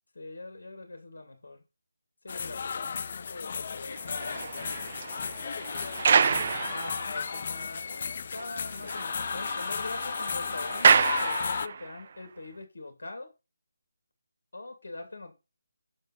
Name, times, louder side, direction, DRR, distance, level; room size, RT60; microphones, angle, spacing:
voice 1, 0.1-1.6 2.2-4.8 6.7-13.3 14.5-15.3, left 2 dB, 60° left, 2.8 m, -43 dB
sound 1, 2.3-11.7, left 6 dB, 40° left, 0.3 m, -34 dB
sound 2, 3.9-7.4 7.9-8.0 8.4-8.5 8.8-12.0, right 6 dB, 40° right, 0.5 m, -28 dB
6.8 x 5.5 x 5.7 m
figure-of-eight pair, 150°, 0 cm